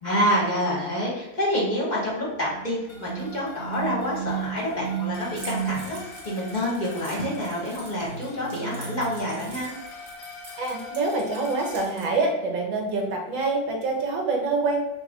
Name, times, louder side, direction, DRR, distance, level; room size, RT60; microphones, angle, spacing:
voice 1, 0.0-9.7, equal, 35° left, -4 dB, 0.7 m, -27 dB
sound 1, 2.4-5.8 8.0-9.4, right 8 dB, 90° left, 0.6 m, -34 dB
sound 2, 2.9-11.8, left 4 dB, 65° left, 1.0 m, -44 dB
Keys jangling, 5.3-12.1, right 2 dB, 45° right, 1.4 m, -46 dB
voice 2, 10.6-14.8, right 3 dB, 75° right, 1 dB, 1.6 m, -26 dB
5.8 x 2.1 x 3.5 m, 1.0 s
omnidirectional pair, 2.1 m